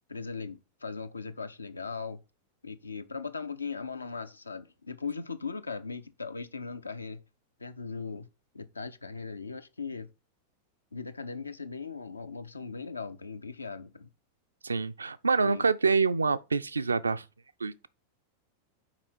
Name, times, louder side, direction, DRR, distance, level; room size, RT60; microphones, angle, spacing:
voice 1, 0.1-2.2 2.6-7.2 7.6-8.3 8.5-10.1 10.9-14.1 15.3-15.6, left 4 dB, 80° left, 0.6 m, -38 dB
voice 2, 14.6-17.2 17.6-17.9, right 4 dB, 75° right, 0.4 m, -26 dB
5.8 x 4.7 x 4.4 m
figure-of-eight pair, 90°, 0 cm